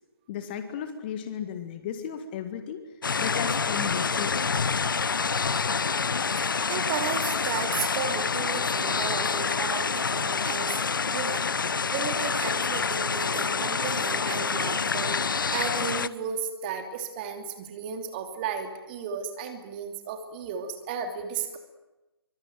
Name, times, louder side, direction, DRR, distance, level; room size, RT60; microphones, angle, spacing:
voice 1, 0.3-2.8 3.2-4.8, left 8 dB, 25° left, 9 dB, 1.8 m, -35 dB
sound 1, 3.0-16.1, left 5 dB, 55° left, 0.9 m, -27 dB
voice 2, 6.4-11.5 11.9-15.1 15.5-21.6, right 6 dB, 25° right, 6 dB, 2.8 m, -34 dB
25.0 x 24.0 x 9.1 m, 1.1 s
figure-of-eight pair, 145°, 13 cm